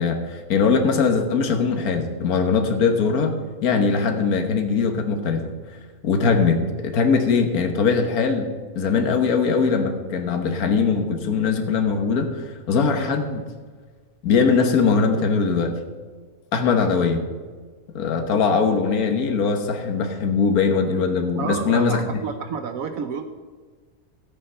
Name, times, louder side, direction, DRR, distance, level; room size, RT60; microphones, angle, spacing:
voice 1, 0.0-3.3 3.6-5.4 5.7-5.8 6.0-6.6 6.8-8.5 8.7-13.4 14.2-15.7 16.5-17.2 17.9-22.1, left 5 dB, 80° left, 5 dB, 1.7 m, -21 dB
voice 2, 21.4-23.2, right 5 dB, 70° right, 8 dB, 1.1 m, -29 dB
13.5 x 8.9 x 5.6 m, 1.5 s
omnidirectional pair, 1.6 m